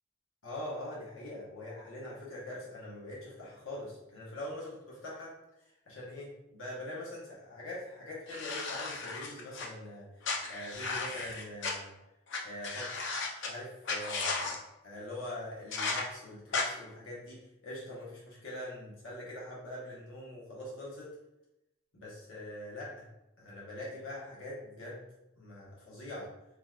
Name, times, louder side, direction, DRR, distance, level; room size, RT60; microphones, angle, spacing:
voice 1, 0.4-5.3 5.9-10.1 10.5-11.9 12.4-13.1 13.4-14.6 14.8-21.1 21.9-23.1 23.4-25.1 25.4-26.3, left 1 dB, 80° left, -6 dB, 1.2 m, -43 dB
sound 1, 8.3-9.7 10.2-11.7 12.3-12.4 12.6-13.5 13.9-14.6 15.7-16.0 16.5-16.6, left 4 dB, 60° left, 0.6 m, -35 dB
3.9 x 2.9 x 2.4 m, 0.90 s
head